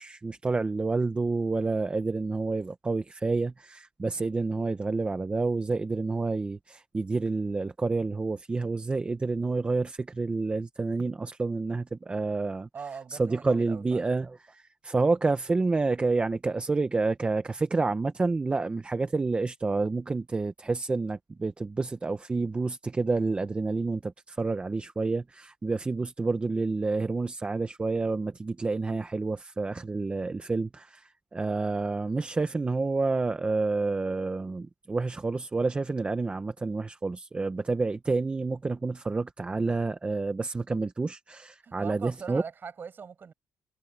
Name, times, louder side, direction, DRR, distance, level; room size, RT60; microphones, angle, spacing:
voice 1, 0.0-12.7 13.1-42.4, right 3 dB, 20° right, 0.7 m, -29 dB
voice 2, 12.7-14.0 41.6-43.3, right 6 dB, 35° right, 5.8 m, -41 dB
cardioid pair, 155°, 6 cm